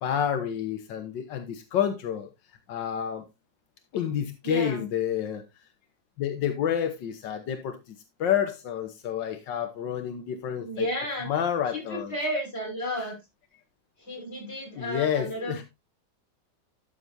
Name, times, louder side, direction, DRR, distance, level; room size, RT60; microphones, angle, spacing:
voice 1, 0.0-2.3 2.7-3.2 3.9-5.4 6.2-7.8 8.2-12.1 13.0-13.2 14.8-15.6, left 9 dB, 85° left, 1.7 m, -29 dB
voice 2, 4.4-4.9 10.6-11.3 11.7-13.2 14.0-15.6, equal, 35° left, 5.6 m, -32 dB
12.5 x 6.8 x 2.7 m
omnidirectional pair, 1.9 m